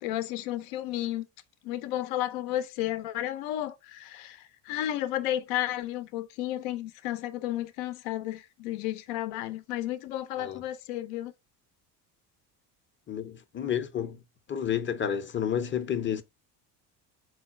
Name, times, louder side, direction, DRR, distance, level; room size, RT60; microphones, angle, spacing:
voice 1, 0.0-1.3 1.6-11.3, left 13 dB, 75° left, 0.6 m, -32 dB
voice 2, 13.1-14.2 14.5-16.2, left 9 dB, 25° left, 0.5 m, -30 dB
4.0 x 2.2 x 4.3 m
hypercardioid pair, 75°, 49 cm